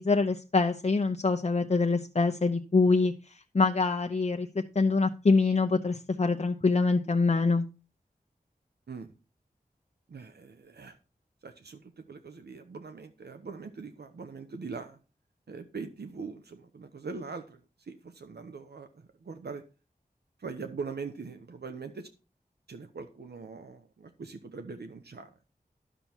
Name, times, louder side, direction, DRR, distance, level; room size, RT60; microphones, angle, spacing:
voice 1, 0.0-7.6, left 3 dB, 40° left, 5 dB, 0.8 m, -25 dB
voice 2, 10.1-11.0 11.4-15.0 15.5-19.6 20.4-22.1 22.7-25.3, right 4 dB, 90° right, 8 dB, 0.9 m, -42 dB
11.0 x 6.9 x 4.5 m, 0.33 s
wide cardioid pair, 50°, 16 cm